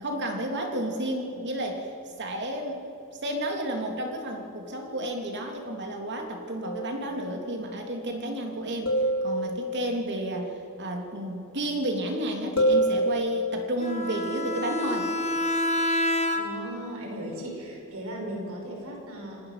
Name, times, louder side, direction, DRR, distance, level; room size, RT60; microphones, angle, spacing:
voice 1, 0.0-1.9 2.2-2.8 3.2-15.1, right 1 dB, 55° right, 2 dB, 3.2 m, -31 dB
sound 1, 6.6-7.2 8.9-10.0 12.6-13.8, right 1 dB, 75° left, 3.6 m, -26 dB
Bowed string instrument, 13.8-16.8, left 1 dB, 30° left, 2.0 m, -28 dB
voice 2, 16.4-19.4, right 1 dB, 70° right, 0 dB, 5.6 m, -37 dB
28.5 x 19.0 x 5.9 m, 3.0 s
head